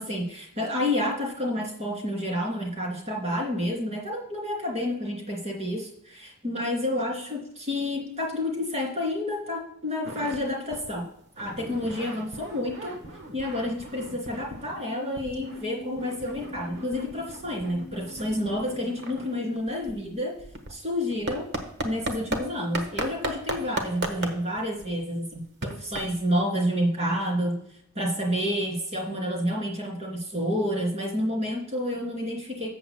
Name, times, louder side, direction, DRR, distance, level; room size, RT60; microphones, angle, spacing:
voice 1, 0.0-11.0 11.4-13.0 13.3-20.3 20.7-21.5 21.8-27.6 27.9-32.7, left 1 dB, 30° right, -1 dB, 3.1 m, -29 dB
sound 1, 10.0-10.4 10.7-10.9 11.2-14.8 15.2-22.4 22.7-26.4, right 1 dB, 55° right, 1.3 m, -36 dB
Keyboard (musical), 14.6-20.6, left 2 dB, 15° left, 1.5 m, -44 dB
13.5 x 8.1 x 2.2 m, 0.72 s
head